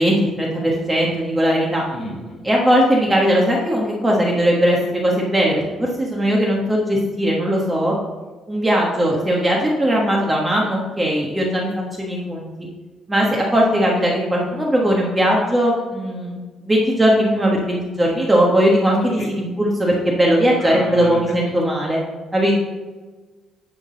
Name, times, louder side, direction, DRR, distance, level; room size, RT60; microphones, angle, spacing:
voice 1, 0.0-1.9 2.4-7.9 8.5-12.7 13.1-22.0 22.3-22.5, equal, 10° right, -3 dB, 1.3 m, -19 dB
voice 2, 1.9-2.5 19.0-19.3 20.6-21.5, left 1 dB, 40° left, -2 dB, 2.4 m, -33 dB
10.5 x 3.9 x 6.2 m, 1.3 s
cardioid pair, 130°, 0 cm